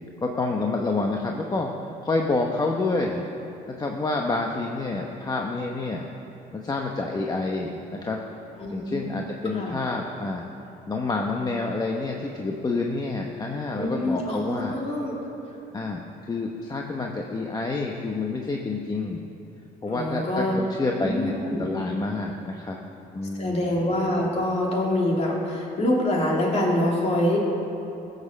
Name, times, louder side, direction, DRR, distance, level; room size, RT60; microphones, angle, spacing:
voice 1, 0.2-1.7 2.0-3.3 3.8-6.1 6.5-8.2 8.7-10.4 10.9-14.7 15.7-19.2 19.8-21.3 21.6-22.8 23.1-23.7, left 3 dB, 25° left, 1 dB, 0.9 m, -28 dB
voice 2, 8.6-9.3 9.5-9.7 13.8-15.1 19.9-20.6 21.0-21.7 23.4-27.4, left 1 dB, 40° left, -2 dB, 2.9 m, -25 dB
15.5 x 6.6 x 7.3 m, 3.0 s
cardioid pair, 110°, 17 cm